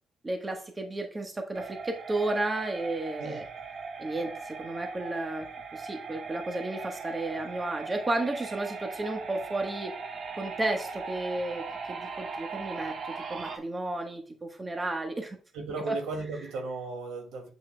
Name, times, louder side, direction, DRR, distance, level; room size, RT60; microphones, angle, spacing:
voice 1, 0.2-3.4 4.0-5.5 5.7-10.0 10.4-15.4 15.9-16.0, right 2 dB, 20° right, 4 dB, 1.2 m, -33 dB
sound 1, 1.5-13.6, right 5 dB, 55° right, 1.2 m, -39 dB
voice 2, 15.5-17.5, right 3 dB, 85° right, 2 dB, 2.1 m, -36 dB
7.6 x 5.5 x 2.2 m, 0.36 s
cardioid pair, 90°, 0 cm